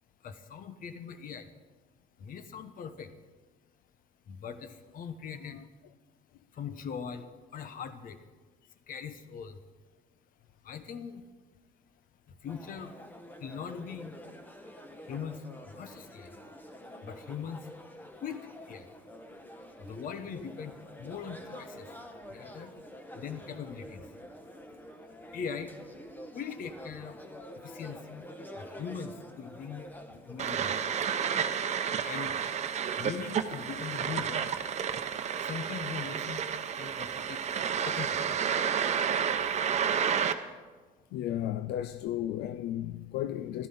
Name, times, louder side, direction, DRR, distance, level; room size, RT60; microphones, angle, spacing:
voice 1, 0.2-1.5 2.2-3.1 4.3-5.6 6.5-7.3 7.5-8.2 8.9-9.5 10.6-11.2 12.3-12.9 13.4-14.2 15.1-15.4 15.7-16.3 17.0-17.6 18.2-18.4 18.7-18.9 19.9-21.9 22.3-22.7 23.2-24.1 25.3-25.7 26.3-27.2 27.6-28.3 28.6-29.8 30.3-30.7 32.0-32.4 33.0-34.5 35.5-36.4 36.8-37.4 37.8-38.4, left 7 dB, 55° left, 1.1 m, -40 dB
sound 1, 12.5-31.5, equal, 10° left, 1.2 m, -48 dB
sound 2, 30.4-40.3, right 7 dB, 40° right, 0.8 m, -31 dB
voice 2, 41.1-43.7, left 12 dB, 80° left, 0.4 m, -34 dB
12.0 x 12.0 x 5.7 m
cardioid pair, 110°, 17 cm